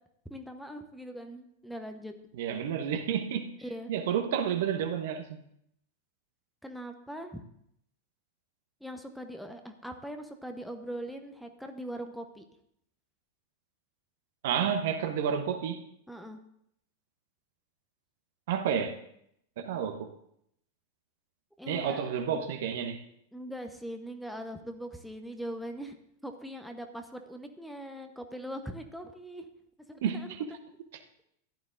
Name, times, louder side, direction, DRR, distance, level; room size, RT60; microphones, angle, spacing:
voice 1, 0.3-2.2 3.6-3.9 6.6-7.4 8.8-12.4 16.1-16.4 21.6-22.2 23.3-26.0 26.2-29.5 29.9-30.6, equal, ahead, 0.9 m, -41 dB
voice 2, 2.4-3.5 3.9-5.4 14.4-15.8 18.5-19.0 19.6-20.1 21.7-23.0 30.0-30.4, right 8 dB, 55° right, 1.0 m, -30 dB
15.0 x 11.0 x 2.6 m
figure-of-eight pair, 90°, 0 cm